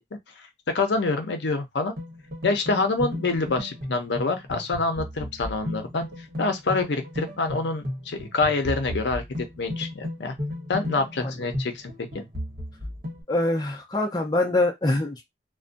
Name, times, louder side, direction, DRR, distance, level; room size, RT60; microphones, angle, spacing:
voice 1, 0.7-1.9 2.4-9.2 9.6-10.3 10.7-12.2, left 3 dB, 75° left, 0.6 m, -26 dB
sound 1, 2.0-13.2, left 1 dB, 50° right, 1.0 m, -34 dB
voice 2, 13.3-15.2, left 2 dB, 20° left, 0.5 m, -24 dB
2.5 x 2.2 x 2.5 m
head